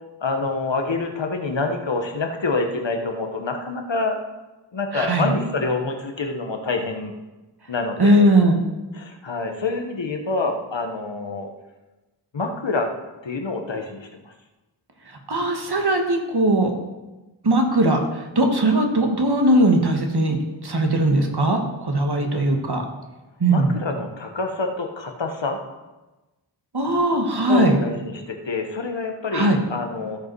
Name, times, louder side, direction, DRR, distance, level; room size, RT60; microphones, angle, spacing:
voice 1, 0.2-4.2 4.7-7.1 7.7-8.3 8.9-11.5 12.3-12.9 13.2-14.3 22.3-22.8 23.5-25.6 27.5-30.2, left 3 dB, 75° left, 4 dB, 1.4 m, -27 dB
voice 2, 4.9-5.3 8.0-8.5 15.3-16.7 17.4-20.4 20.6-22.8 23.4-23.6 26.7-27.7 29.3-29.6, right 1 dB, 60° right, 3 dB, 1.7 m, -19 dB
15.0 x 5.4 x 4.7 m, 1.1 s
wide cardioid pair, 45°, 45 cm